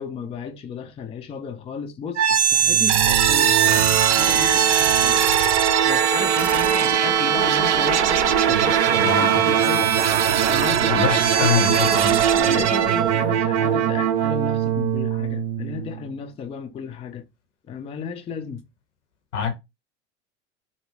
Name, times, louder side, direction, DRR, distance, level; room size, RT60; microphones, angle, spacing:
voice 1, 0.0-5.2 5.8-9.9 10.5-11.1 11.4-11.5 12.4-17.2 17.7-18.7, left 6 dB, 15° left, 0.4 m, -34 dB
sound 1, 2.2-16.0, right 9 dB, 75° right, 0.5 m, -19 dB
voice 2, 9.0-9.4 10.9-12.2 19.3-19.5, left 8 dB, 80° left, 0.9 m, -25 dB
2.6 x 2.2 x 3.1 m
hypercardioid pair, 80°, 35 cm